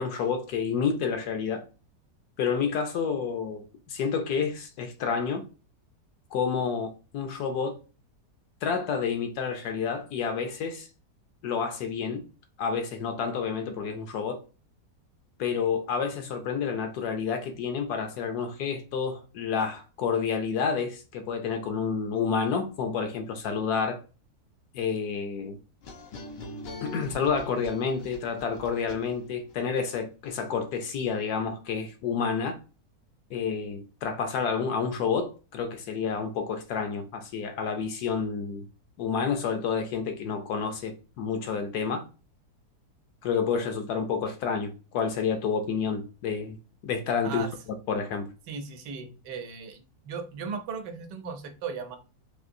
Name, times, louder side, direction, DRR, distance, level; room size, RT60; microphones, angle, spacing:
voice 1, 0.0-1.6 2.4-5.4 6.3-7.8 8.6-10.9 11.4-12.2 12.6-14.4 15.4-24.0 24.7-25.6 26.8-32.6 33.3-38.6 39.0-42.0 43.2-46.6 46.8-47.5 47.9-48.3, left 6 dB, 75° left, 1.1 m, -29 dB
sound 1, 25.8-29.5, left 1 dB, 90° left, 1.5 m, -43 dB
voice 2, 48.5-52.0, right 6 dB, 80° right, 1.3 m, -37 dB
4.2 x 2.5 x 2.6 m
omnidirectional pair, 1.8 m